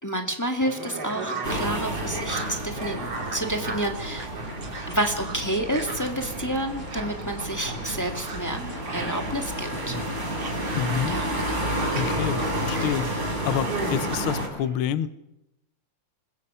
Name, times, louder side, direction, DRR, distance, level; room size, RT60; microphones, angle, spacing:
voice 1, 0.0-3.1 3.3-4.3 4.9-8.6 8.9-9.9 11.0-11.3 12.7-12.9, right 1 dB, 10° left, 3 dB, 1.2 m, -29 dB
sound 1, 0.6-14.5, right 3 dB, 55° right, 4.6 m, -37 dB
sound 2, 1.4-14.5, right 1 dB, 25° right, 4.9 m, -31 dB
voice 2, 10.7-11.1 11.9-13.2 13.4-15.1, left 9 dB, 70° left, 14 dB, 1.3 m, -28 dB
26.0 x 21.0 x 5.6 m, 0.94 s
omnidirectional pair, 3.3 m